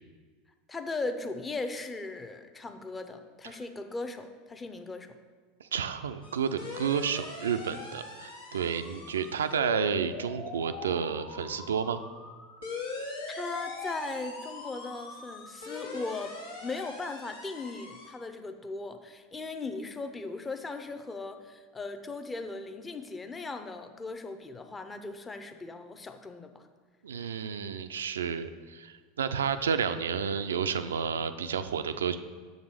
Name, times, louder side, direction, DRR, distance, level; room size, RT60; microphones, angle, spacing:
voice 1, 0.7-5.1 13.3-16.3 16.6-26.7, left 3 dB, 20° left, 7 dB, 0.7 m, -38 dB
voice 2, 5.6-12.0 27.0-32.2, right 7 dB, 80° right, 10 dB, 0.4 m, -31 dB
sound 1, 6.2-18.1, left 3 dB, 85° left, 1.5 m, -42 dB
6.9 x 4.0 x 6.5 m, 1.5 s
figure-of-eight pair, 80°, 0 cm